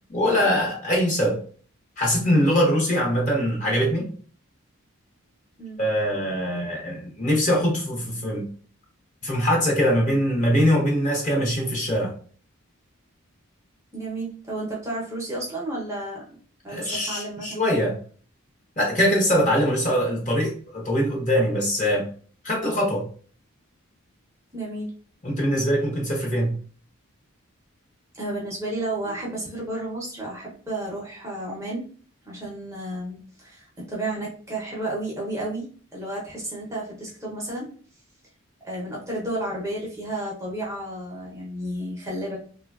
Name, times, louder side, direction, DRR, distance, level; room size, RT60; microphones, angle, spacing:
voice 1, 0.1-1.4 2.0-4.1 5.8-8.5 9.2-12.1 16.7-18.0 18.8-22.1 22.4-23.1 25.2-26.6, equal, 35° left, -1 dB, 0.9 m, -22 dB
voice 2, 13.9-16.2 16.6-17.6 24.5-24.9 28.1-31.8 32.3-37.7 38.6-42.4, right 1 dB, 15° right, -4 dB, 0.6 m, -32 dB
3.2 x 2.2 x 2.3 m, 0.43 s
head